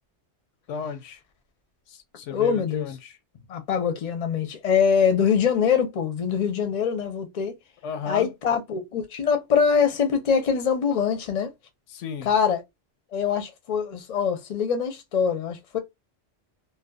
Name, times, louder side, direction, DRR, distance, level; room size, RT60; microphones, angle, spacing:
voice 1, 0.7-1.2 1.9-3.2 7.8-8.3 11.9-12.3, left 7 dB, 80° left, 0.9 m, -34 dB
voice 2, 2.3-2.9 3.5-7.5 8.1-11.5 12.2-12.6 13.1-15.8, left 7 dB, 45° left, 0.6 m, -23 dB
2.6 x 2.2 x 2.2 m
omnidirectional pair, 1.2 m